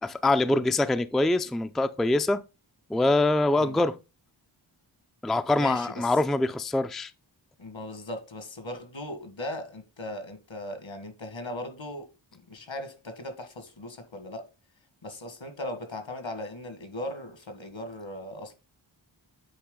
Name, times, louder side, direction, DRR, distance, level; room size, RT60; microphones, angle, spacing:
voice 1, 0.0-2.4 2.9-4.0 5.2-7.1, left 2 dB, ahead, 0.4 m, -24 dB
voice 2, 5.6-6.1 7.6-14.5 15.0-18.5, left 1 dB, 70° left, 1.8 m, -38 dB
8.7 x 4.8 x 3.8 m
wide cardioid pair, 70°, 47 cm